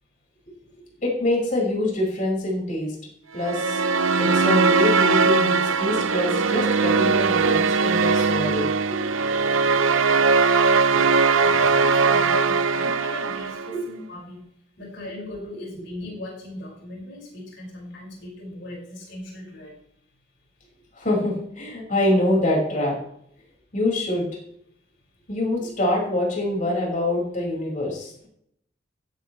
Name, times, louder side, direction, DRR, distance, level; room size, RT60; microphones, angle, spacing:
voice 1, 0.8-3.0 3.3-3.8 4.2-9.1 10.7-11.5 13.7-13.8 20.9-23.0 23.7-24.3 25.3-28.3, left 1 dB, 40° left, -2 dB, 5.6 m, -25 dB
sound 1, 3.4-13.8, right 4 dB, 85° right, 0.8 m, -20 dB
voice 2, 11.4-14.4 14.8-19.8, left 1 dB, 65° left, -2 dB, 5.7 m, -38 dB
16.0 x 16.0 x 3.3 m, 0.69 s
head